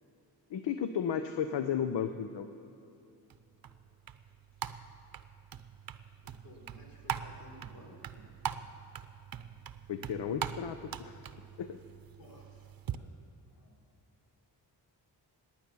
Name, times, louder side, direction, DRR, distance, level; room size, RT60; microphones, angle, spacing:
voice 1, 0.5-2.5 9.9-11.1 11.6-11.8, left 8 dB, 75° left, 9 dB, 0.8 m, -34 dB
sound 1, 3.3-13.0, right 9 dB, 50° right, 0.8 m, -42 dB
voice 2, 6.2-8.3 12.1-13.1 13.4-13.8, left 1 dB, 50° left, -1 dB, 4.0 m, -56 dB
18.5 x 9.9 x 6.9 m, 2.7 s
cardioid pair, 65°, 44 cm